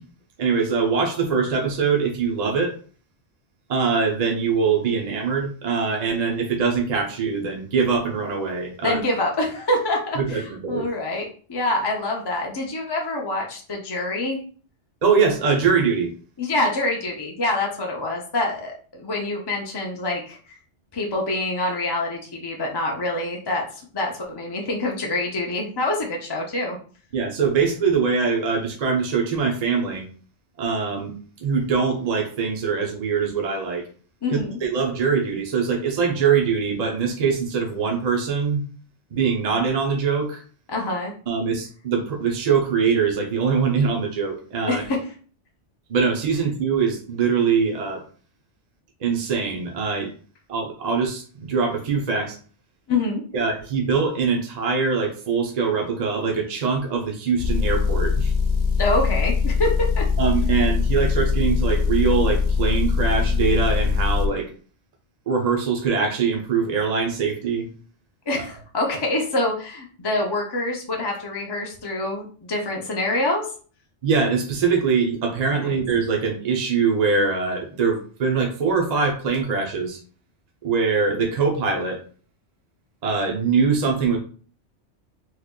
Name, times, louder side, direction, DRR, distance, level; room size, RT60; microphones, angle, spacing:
voice 1, 0.4-2.7 3.7-9.0 10.2-10.9 15.0-16.1 27.1-30.0 30.6-33.8 34.3-38.6 39.1-40.4 41.3-44.8 45.9-48.0 49.0-50.1 50.5-52.4 53.3-58.3 60.2-64.5 65.3-67.7 68.3-68.4 74.0-80.0 80.6-82.0 83.0-84.2, right 5 dB, 45° right, 1 dB, 0.6 m, -23 dB
voice 2, 8.8-10.4 10.7-14.4 16.4-20.4 20.9-23.6 23.9-26.8 34.2-34.6 40.7-41.1 44.7-45.0 52.9-53.2 58.8-60.0 68.3-73.5 75.6-75.8, left 2 dB, 35° left, -1 dB, 0.4 m, -26 dB
Motor vehicle (road) / Engine, 57.4-64.3, left 5 dB, 80° left, 0.9 m, -22 dB
3.7 x 3.1 x 2.2 m, 0.42 s
omnidirectional pair, 1.2 m